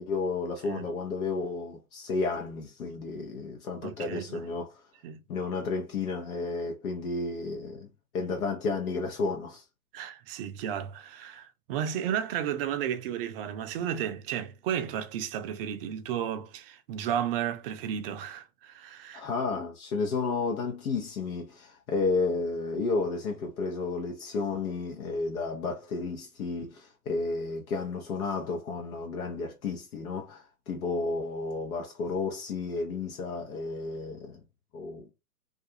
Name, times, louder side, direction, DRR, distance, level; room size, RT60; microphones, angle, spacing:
voice 1, 0.0-4.8 5.3-7.9 8.1-9.6 19.1-34.4 34.7-35.1, left 3 dB, 70° left, 0.8 m, -32 dB
voice 2, 3.8-4.4 5.0-5.2 9.9-19.3, right 9 dB, 40° right, 0.4 m, -33 dB
2.4 x 2.3 x 2.7 m
hypercardioid pair, 115°, 44 cm